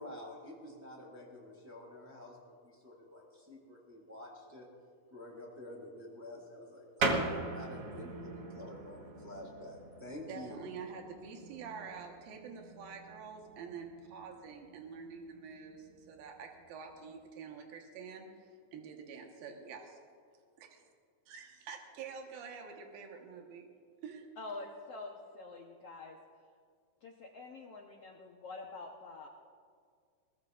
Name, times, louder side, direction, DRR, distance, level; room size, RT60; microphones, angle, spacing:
voice 1, 0.0-4.7 5.1-10.7, left 1 dB, 5° right, -3 dB, 2.4 m, -48 dB
sound 1, 7.0-17.2, right 3 dB, 55° right, 1.8 m, -41 dB
voice 2, 10.3-20.0 20.6-20.8 21.3-23.7 24.0-24.3, right 6 dB, 80° right, 2 dB, 3.1 m, -47 dB
voice 3, 24.4-26.2 27.0-29.3, left 3 dB, 70° left, 0 dB, 1.5 m, -46 dB
21.5 x 19.0 x 2.5 m, 2.1 s
omnidirectional pair, 4.1 m